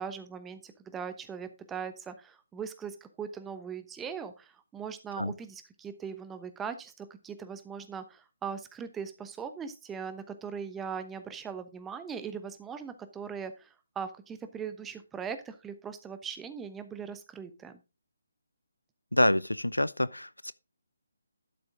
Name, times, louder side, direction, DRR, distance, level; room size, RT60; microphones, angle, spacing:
voice 1, 0.0-17.8, right 6 dB, 10° right, 1.0 m, -40 dB
voice 2, 19.1-20.5, left 1 dB, 85° left, 0.6 m, -27 dB
12.0 x 6.8 x 3.7 m
figure-of-eight pair, 145°, 0 cm